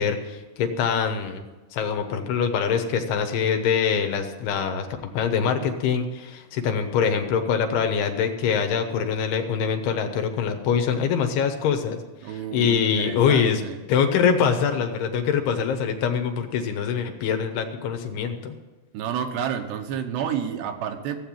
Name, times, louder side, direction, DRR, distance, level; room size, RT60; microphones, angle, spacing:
voice 1, 0.0-1.4 1.7-13.6 13.9-18.5, left 7 dB, 75° left, 6 dB, 3.1 m, -24 dB
voice 2, 12.2-13.8 18.9-21.2, right 8 dB, 85° right, 5 dB, 3.3 m, -30 dB
15.5 x 7.9 x 8.8 m, 1.2 s
omnidirectional pair, 4.7 m